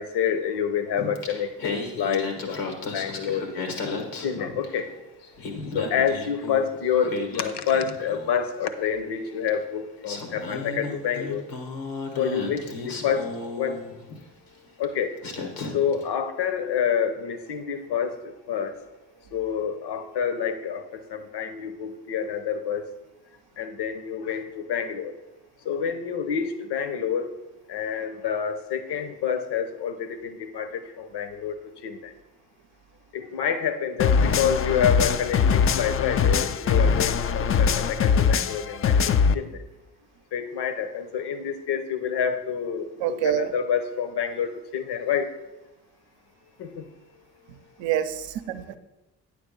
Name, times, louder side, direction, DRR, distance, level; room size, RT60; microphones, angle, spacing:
voice 1, 0.0-5.1 5.7-11.4 12.2-13.3 13.5-13.8 14.8-15.1 15.7-18.7 19.3-22.8 23.6-25.1 25.6-27.3 27.7-31.5 31.8-32.1 33.1-39.6 40.3-45.3 46.6-46.9, left 7 dB, 60° left, 10 dB, 0.9 m, -28 dB
Singing, 1.0-4.9 5.2-8.5 9.5-9.6 10.0-14.2 14.8-15.0 15.2-16.0, left 3 dB, 85° left, 1.3 m, -34 dB
sound 1, 34.0-39.3, left 6 dB, 30° left, 0.4 m, -22 dB
voice 2, 43.0-43.5 47.8-48.8, right 11 dB, 70° right, 10 dB, 0.7 m, -26 dB
9.6 x 3.5 x 6.8 m, 1.0 s
hypercardioid pair, 40°, 46 cm